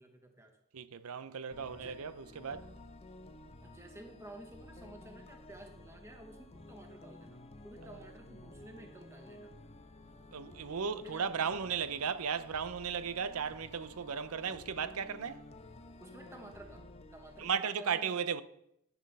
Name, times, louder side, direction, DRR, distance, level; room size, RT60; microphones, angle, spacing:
voice 1, 0.0-0.6 1.7-2.0 3.6-7.4 7.6-9.5 11.0-11.3 16.0-18.2, right 1 dB, 10° right, 1.0 m, -52 dB
voice 2, 0.7-2.7 7.8-8.1 10.3-15.4 17.4-18.4, right 6 dB, 70° right, 0.6 m, -36 dB
sound 1, 1.5-17.5, left 2 dB, 30° left, 0.6 m, -53 dB
10.5 x 7.3 x 5.4 m
head